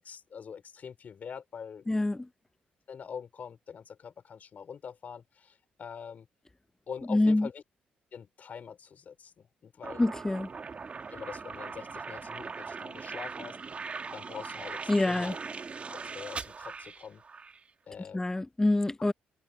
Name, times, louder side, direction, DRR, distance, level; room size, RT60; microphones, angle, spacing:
voice 1, 0.0-1.9 2.9-6.3 6.9-7.6 8.1-10.1 11.1-13.6 14.1-15.4 15.9-17.2 17.9-18.2, left 7 dB, 55° left, 3.7 m, -44 dB
voice 2, 1.9-2.3 7.1-7.5 10.0-10.5 14.9-15.3 18.1-19.1, left 2 dB, 15° left, 0.7 m, -26 dB
sound 1, 9.8-17.6, right 5 dB, 40° right, 1.9 m, -40 dB
cardioid pair, 80°, 3 cm